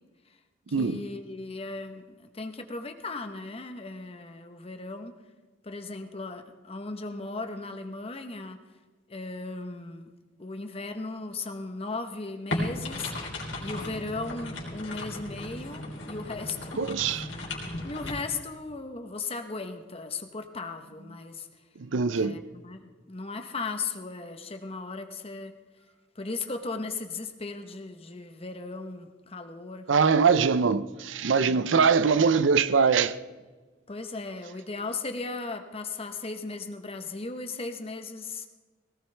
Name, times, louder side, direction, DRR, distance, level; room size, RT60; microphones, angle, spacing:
voice 1, 0.7-5.1 5.6-8.6 9.1-10.1 10.4-13.1 13.6-17.2 17.8-21.5 22.1-25.5 26.1-29.9 31.4-31.8 33.9-38.5, left 3 dB, 30° left, 1.0 m, -37 dB
sound 1, 12.5-18.1, left 1 dB, 85° left, 3.4 m, -36 dB
voice 2, 16.8-17.2 21.8-22.4 29.9-33.2, right 5 dB, 90° right, 0.6 m, -22 dB
18.5 x 17.0 x 3.4 m
head